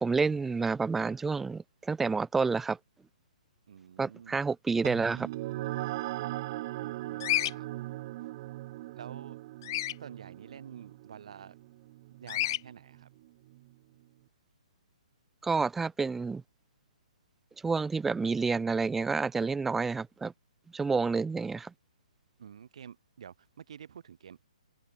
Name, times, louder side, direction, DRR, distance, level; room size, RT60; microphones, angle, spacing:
voice 1, 0.0-2.8 4.0-5.3 15.4-16.4 17.6-20.3 20.7-21.7, right 4 dB, 5° right, 0.6 m, -29 dB
voice 2, 3.7-4.4 6.8-7.7 8.9-9.4 10.0-11.5 12.2-13.1 22.4-24.5, right 8 dB, 60° right, 4.2 m, -49 dB
sound 1, 4.8-13.7, right 17 dB, 35° right, 1.2 m, -39 dB
Bird vocalization bird call bird song, 7.2-7.5 9.6-10.0 12.3-12.6, left 14 dB, 35° left, 0.3 m, -29 dB
open air
hypercardioid pair, 150°, 4 cm